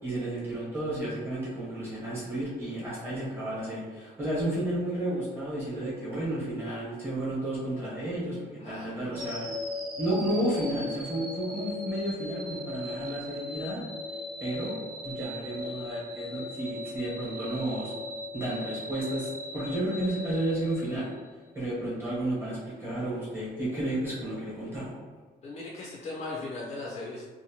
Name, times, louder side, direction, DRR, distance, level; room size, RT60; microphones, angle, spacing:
voice 1, 0.0-8.4 8.6-9.4 10.0-13.8 14.4-14.7 15.0-17.9 18.3-21.1 21.5-24.9, right 1 dB, 15° right, -8 dB, 1.0 m, -32 dB
voice 2, 8.6-9.5 25.4-27.3, left 2 dB, 40° left, -3 dB, 0.4 m, -39 dB
sound 1, 9.1-21.3, left 2 dB, 30° right, 0.7 m, -38 dB
2.7 x 2.1 x 2.8 m, 1.4 s
cardioid pair, 165°, 16 cm